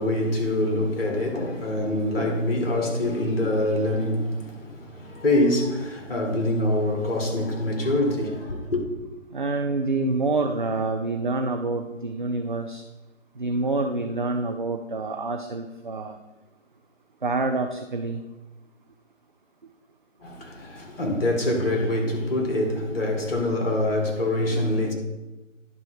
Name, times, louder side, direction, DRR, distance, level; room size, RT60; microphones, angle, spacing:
voice 1, 0.0-8.8 20.2-24.9, left 1 dB, 45° left, 2.0 m, -25 dB
voice 2, 9.3-12.8 13.4-16.2 17.2-18.2, right 3 dB, 40° right, 0.4 m, -27 dB
10.5 x 3.7 x 5.6 m
figure-of-eight pair, 150°, 39 cm